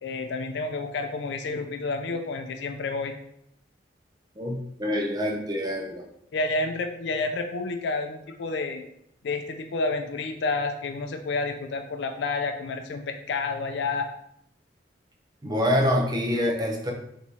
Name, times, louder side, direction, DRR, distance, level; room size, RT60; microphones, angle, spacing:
voice 1, 0.0-3.2 6.3-8.8 9.2-14.1, left 3 dB, 70° left, 6 dB, 0.4 m, -30 dB
voice 2, 4.4-6.0 15.4-16.9, left 1 dB, 25° right, -1 dB, 0.6 m, -26 dB
3.5 x 3.1 x 4.1 m, 0.73 s
head